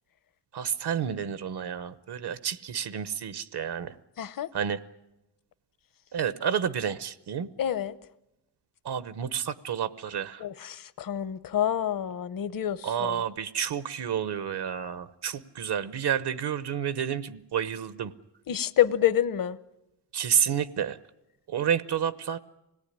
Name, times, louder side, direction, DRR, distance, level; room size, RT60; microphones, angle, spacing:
voice 1, 0.5-3.9 4.5-4.8 6.1-7.5 8.8-10.4 12.8-18.1 20.1-21.0 21.5-22.4, right 8 dB, 75° right, 15 dB, 1.0 m, -30 dB
voice 2, 4.2-4.5 7.6-8.0 10.4-13.2 18.5-19.6, left 10 dB, 55° left, 16 dB, 0.8 m, -27 dB
26.0 x 18.5 x 10.0 m, 0.94 s
wide cardioid pair, 140°, 40 cm